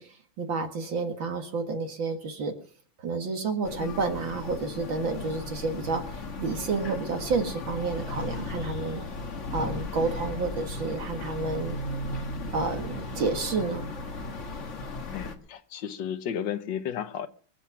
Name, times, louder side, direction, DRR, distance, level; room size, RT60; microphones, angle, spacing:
voice 1, 0.0-2.5 3.0-9.0 9.5-11.8 12.5-13.8, right 4 dB, 70° right, 2.5 m, -30 dB
sound 1, 3.6-15.4, left 2 dB, 40° left, 1.7 m, -36 dB
voice 2, 15.1-17.3, left 9 dB, 65° left, 1.7 m, -33 dB
23.5 x 8.2 x 5.9 m
omnidirectional pair, 2.2 m